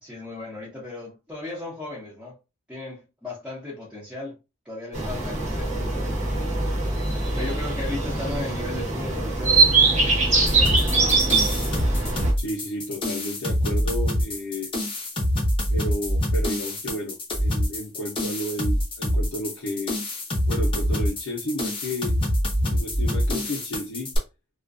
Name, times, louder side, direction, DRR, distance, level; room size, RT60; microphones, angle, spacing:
voice 1, 0.0-2.4 2.7-4.4 4.6-6.1 7.3-10.9, left 2 dB, 5° right, 0.8 m, -36 dB
sound 1, 4.9-12.3, right 3 dB, 35° right, 0.9 m, -22 dB
sound 2, 10.5-24.2, equal, 25° left, 0.7 m, -25 dB
voice 2, 12.4-14.7 15.7-20.0 20.5-22.2 22.7-24.1, equal, 80° left, 0.6 m, -32 dB
2.4 x 2.2 x 2.4 m
head